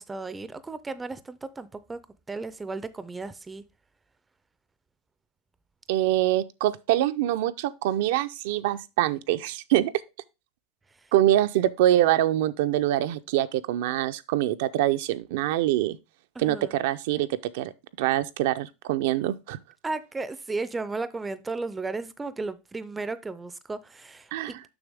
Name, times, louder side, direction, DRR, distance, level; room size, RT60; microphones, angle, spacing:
voice 1, 0.0-2.0 2.3-3.6 16.4-16.7 19.8-24.6, right 3 dB, 10° right, 0.4 m, -34 dB
voice 2, 5.9-9.9 11.1-16.0 16.4-17.7 18.0-19.6 24.3-24.6, right 13 dB, 70° right, 0.5 m, -24 dB
7.0 x 5.8 x 3.5 m
supercardioid pair, 150°, 0 cm